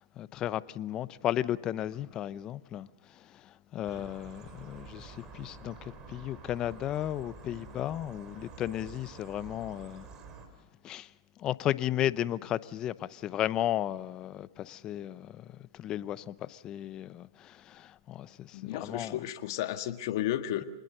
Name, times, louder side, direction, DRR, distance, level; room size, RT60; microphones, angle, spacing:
voice 1, 0.0-2.9 3.1-10.1 10.8-11.1 11.4-19.2, left 12 dB, 30° left, 0.7 m, -34 dB
sound 1, 3.8-10.5, right 5 dB, 30° right, 4.2 m, -49 dB
voice 2, 18.5-20.6, left 12 dB, 60° left, 1.6 m, -33 dB
27.0 x 20.0 x 6.7 m
hypercardioid pair, 125°, 2 cm